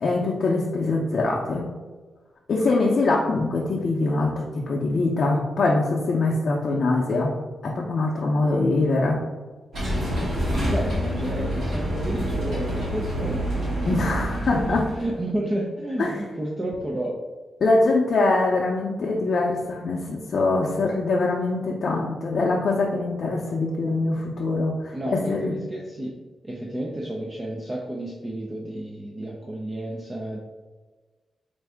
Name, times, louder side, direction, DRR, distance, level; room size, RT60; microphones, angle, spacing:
voice 1, 0.0-1.7 2.5-7.3 7.6-9.2 13.9-14.9 16.0-16.1 17.6-25.5, left 2 dB, 55° left, -3 dB, 0.5 m, -23 dB
sound 1, 9.7-15.2, equal, 70° right, 1.4 m, -27 dB
voice 2, 10.6-17.2 24.9-26.1 26.4-30.4, right 1 dB, 20° right, -2 dB, 0.5 m, -31 dB
4.5 x 2.6 x 3.4 m, 1.3 s
wide cardioid pair, 125°, 0 cm